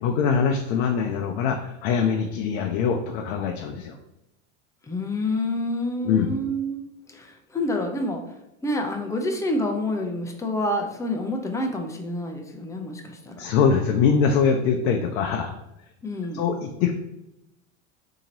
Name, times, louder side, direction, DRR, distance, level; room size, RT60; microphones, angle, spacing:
voice 1, 0.0-4.0 6.0-6.3 13.4-15.5 16.3-16.9, left 6 dB, 65° left, 3 dB, 0.5 m, -23 dB
voice 2, 4.9-6.8 7.1-8.2 8.6-13.4 16.0-16.4, left 1 dB, 10° left, 3 dB, 0.5 m, -28 dB
2.8 x 2.8 x 3.9 m, 0.89 s
supercardioid pair, 100°, 36 cm